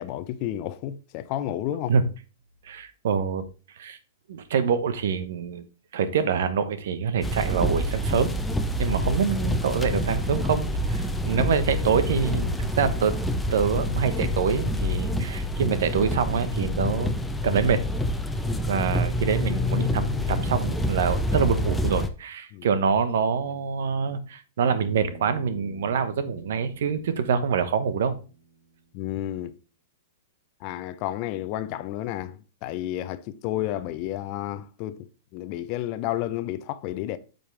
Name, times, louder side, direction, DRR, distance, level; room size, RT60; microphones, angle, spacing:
voice 1, 0.0-1.9 8.9-9.0 18.4-18.6 22.5-22.7 28.9-29.6 30.6-37.2, left 13 dB, 45° left, 0.7 m, -31 dB
voice 2, 2.6-3.5 3.8-4.0 4.3-5.6 5.9-8.3 8.8-13.1 13.5-17.1 17.4-17.8 18.7-28.2, right 6 dB, 70° right, 1.0 m, -25 dB
sound 1, 7.2-22.1, left 1 dB, 5° left, 0.8 m, -27 dB
Bass guitar, 24.6-29.0, right 2 dB, 45° right, 2.9 m, -46 dB
8.9 x 5.4 x 3.4 m
hypercardioid pair, 115°, 0 cm